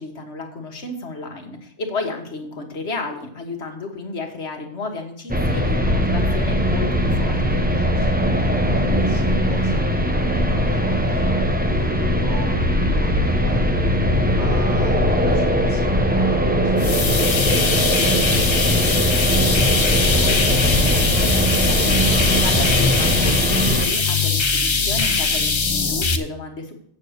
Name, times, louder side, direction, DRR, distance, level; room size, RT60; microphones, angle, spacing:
voice 1, 0.0-7.6 20.0-26.7, left 3 dB, 65° left, 3 dB, 1.8 m, -32 dB
sound 1, 5.3-23.9, equal, 10° right, 0.7 m, -20 dB
voice 2, 7.7-9.8 10.3-13.8 14.3-19.1, equal, 80° right, -4 dB, 3.6 m, -37 dB
sound 2, 16.8-26.2, left 4 dB, 30° left, 0.6 m, -21 dB
8.6 x 6.7 x 6.5 m, 0.66 s
omnidirectional pair, 1.2 m